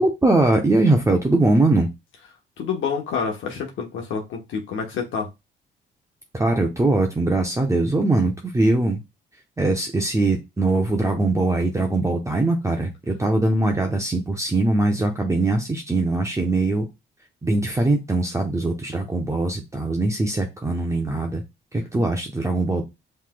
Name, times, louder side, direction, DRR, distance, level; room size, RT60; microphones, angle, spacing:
voice 1, 0.0-1.9 6.3-9.0 9.6-16.9 17.4-21.4 21.7-22.8, right 2 dB, 15° right, 3 dB, 0.7 m, -21 dB
voice 2, 2.6-5.3, left 6 dB, 75° left, 2 dB, 1.0 m, -28 dB
5.6 x 3.2 x 2.2 m, 0.23 s
cardioid pair, 90°, 20 cm